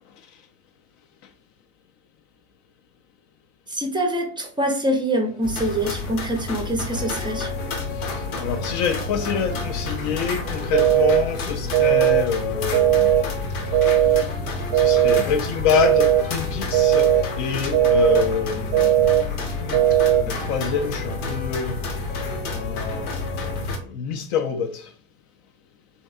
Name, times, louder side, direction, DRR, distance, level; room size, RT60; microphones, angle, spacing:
voice 1, 3.7-7.5, right 1 dB, 10° right, 0.5 m, -25 dB
sound 1, 5.4-23.8, left 3 dB, 80° left, 0.8 m, -30 dB
sound 2, 6.9-23.6, left 3 dB, 25° left, 0.8 m, -37 dB
voice 2, 8.0-13.1 14.2-14.3 14.7-19.1 19.6-21.8 22.5-24.9, left 7 dB, 45° left, 0.4 m, -27 dB
sound 3, 10.7-11.2 11.7-12.2 12.7-13.2 13.7-14.2 14.7-15.2 15.7-16.2 16.7-17.2 17.7-18.2 18.7-19.2 19.7-20.2, right 13 dB, 55° right, 0.5 m, -17 dB
3.3 x 2.6 x 2.4 m
hypercardioid pair, 80°, 42 cm